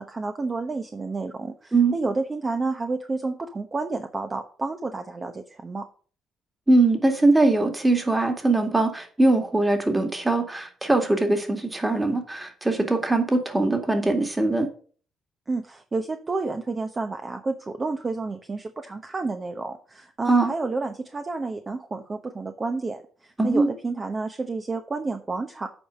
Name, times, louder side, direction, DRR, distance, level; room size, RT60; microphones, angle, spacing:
voice 1, 0.0-5.9 15.5-25.7, right 3 dB, 30° right, 6 dB, 0.9 m, -30 dB
voice 2, 6.7-14.7 20.3-20.5 23.4-23.7, right 2 dB, 15° right, 5 dB, 2.1 m, -21 dB
8.6 x 5.0 x 6.4 m, 0.42 s
cardioid pair, 90°, 0 cm